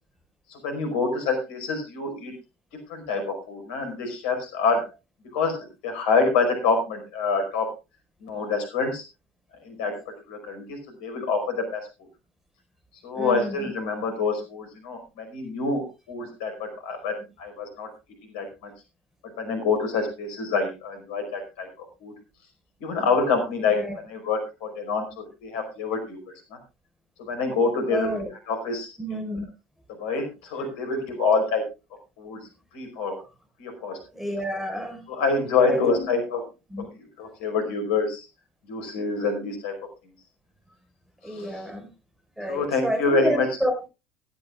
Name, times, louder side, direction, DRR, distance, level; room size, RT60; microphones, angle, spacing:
voice 1, 0.5-2.3 2.9-4.9 5.3-7.7 8.2-9.0 9.6-11.9 13.0-17.9 18.3-18.7 19.4-22.1 22.8-23.8 24.1-26.2 26.5-26.6 27.2-28.1 28.5-29.4 30.0-31.6 32.2-33.2 33.6-34.0 35.1-36.4 37.2-38.3 38.7-39.7 41.3-41.6 42.5-43.5, left 4 dB, 65° left, 5 dB, 5.1 m, -26 dB
voice 2, 13.1-13.7 23.6-24.0 27.9-28.3 29.0-29.5 34.1-35.0 35.6-36.1 36.7-36.9 41.2-41.9 42.4-43.9, equal, 5° right, 6 dB, 5.3 m, -30 dB
16.0 x 15.0 x 2.5 m, 0.28 s
figure-of-eight pair, 65°, 6 cm